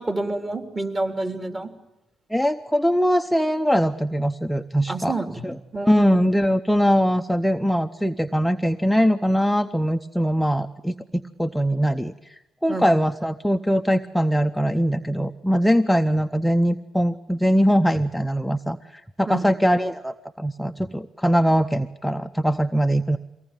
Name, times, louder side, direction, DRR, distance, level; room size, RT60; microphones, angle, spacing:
voice 1, 0.0-1.7 4.9-5.4 5.7-6.1 12.7-12.9 19.3-19.5, right 2 dB, 25° right, 6 dB, 3.1 m, -28 dB
voice 2, 2.3-5.1 5.4-5.6 5.8-23.2, equal, ahead, 6 dB, 0.8 m, -22 dB
23.5 x 18.5 x 8.9 m, 0.96 s
cardioid pair, 90°, 0 cm